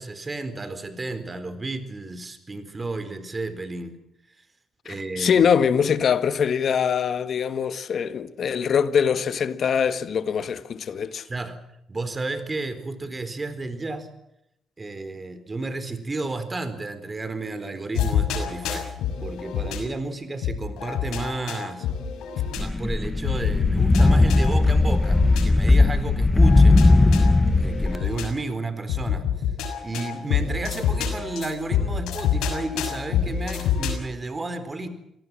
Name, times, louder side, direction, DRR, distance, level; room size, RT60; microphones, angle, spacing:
voice 1, 0.0-4.0 4.8-5.5 11.3-11.6 11.9-14.1 14.8-18.9 19.2-21.9 22.5-29.2 29.8-34.9, right 2 dB, 25° right, 4.2 m, -32 dB
voice 2, 4.8-11.3, left 7 dB, 55° left, 1.6 m, -23 dB
sound 1, 18.0-19.8 20.4-22.6 23.2-25.4 26.1-28.3 28.9-33.9, left 8 dB, 85° left, 6.0 m, -27 dB
sound 2, 22.6-28.0, left 2 dB, 20° left, 1.3 m, -18 dB
27.0 x 18.5 x 7.5 m
cardioid pair, 90°, 0 cm